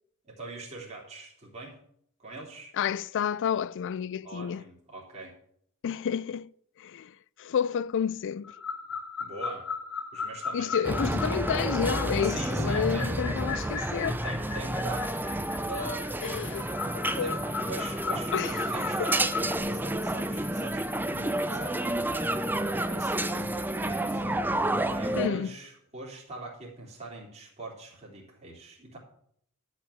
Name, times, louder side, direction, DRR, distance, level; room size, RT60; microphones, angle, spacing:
voice 1, 0.2-1.8 2.2-2.7 4.2-5.4 9.2-9.7 10.1-10.7 12.2-13.2 14.2-15.3 15.6-16.1 17.1-17.4 17.7-29.0, right 2 dB, 30° right, 3.3 m, -43 dB
voice 2, 2.8-4.6 5.8-6.5 6.8-8.5 10.5-14.2 16.2-17.4 18.3-18.6 19.0-19.1 25.1-25.5, left 7 dB, 60° left, 0.4 m, -30 dB
sound 1, 8.4-19.6, left 5 dB, 85° left, 2.6 m, -37 dB
sound 2, 10.8-25.3, right 1 dB, 10° right, 0.5 m, -30 dB
sound 3, 14.8-24.1, equal, 5° left, 2.8 m, -45 dB
11.5 x 6.1 x 8.3 m
head